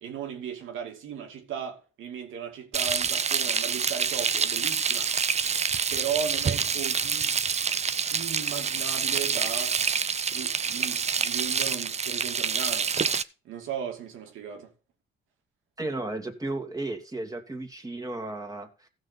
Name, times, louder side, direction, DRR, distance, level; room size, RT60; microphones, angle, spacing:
voice 1, 0.0-5.1 5.9-7.4 8.1-9.7 10.3-12.9 13.4-14.7, right 8 dB, 85° right, 2.6 m, -36 dB
Frying (food), 2.7-13.2, right 6 dB, 35° right, 0.7 m, -27 dB
voice 2, 15.8-18.9, right 2 dB, 20° right, 2.4 m, -34 dB
16.0 x 6.4 x 4.1 m
cardioid pair, 90°, 20 cm